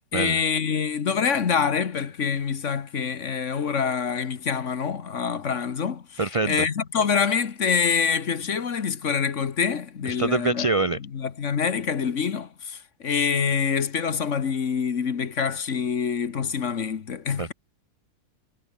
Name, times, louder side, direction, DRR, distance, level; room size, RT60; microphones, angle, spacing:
voice 1, 0.1-10.7 11.1-17.5, left 6 dB, 50° left, 1.5 m, -26 dB
voice 2, 6.2-6.6 10.1-11.0 17.4-17.5, right 3 dB, 45° right, 0.4 m, -25 dB
omnidirectional pair, 1.7 m